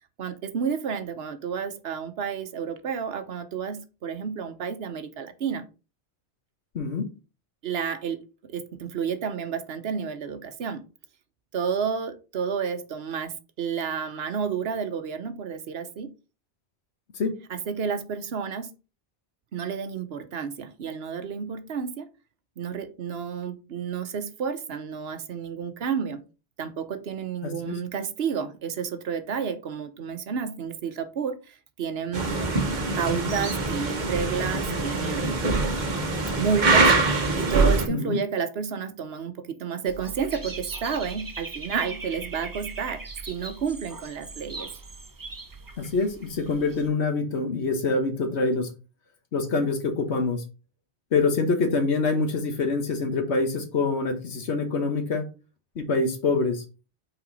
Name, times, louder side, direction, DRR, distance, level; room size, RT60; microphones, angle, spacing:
voice 1, 0.2-5.7 7.6-8.2 8.5-10.9 11.5-16.1 17.5-18.7 19.5-22.1 22.6-26.2 26.6-32.3 33.0-35.5 36.4-36.9 37.4-44.7, right 7 dB, 65° right, 1.0 m, -31 dB
voice 2, 6.7-7.1 17.2-17.3 27.4-27.7 37.9-38.2 45.8-48.7 49.3-50.4 51.1-55.3 55.7-56.6, left 3 dB, 85° left, 1.4 m, -25 dB
sound 1, 32.1-37.9, right 3 dB, 45° right, 1.2 m, -23 dB
Dog / Bird, 39.9-46.9, right 3 dB, 25° right, 0.6 m, -40 dB
5.9 x 4.3 x 4.0 m
omnidirectional pair, 1.1 m